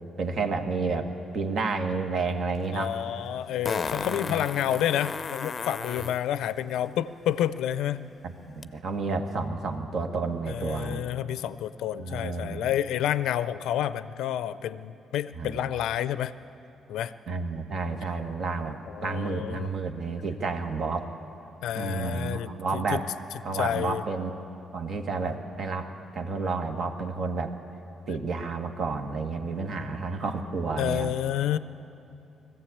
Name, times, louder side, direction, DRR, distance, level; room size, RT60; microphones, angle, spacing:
voice 1, 0.2-2.9 4.0-4.5 8.2-11.0 12.0-12.7 15.4-15.6 17.3-21.1 21.7-23.1 23.4-24.4 24.7-27.5 28.1-31.1, right 4 dB, 60° right, 6 dB, 1.5 m, -31 dB
Fart, 2.5-2.6 3.6-6.2 8.6-8.7, left 5 dB, 40° left, 0.5 m, -33 dB
voice 2, 2.7-8.0 10.5-16.3 16.9-17.1 18.9-19.7 21.6-23.0 23.5-24.0 30.8-31.6, left 11 dB, 85° left, 14 dB, 0.5 m, -29 dB
20.0 x 15.0 x 8.5 m, 2.8 s
cardioid pair, 90°, 0 cm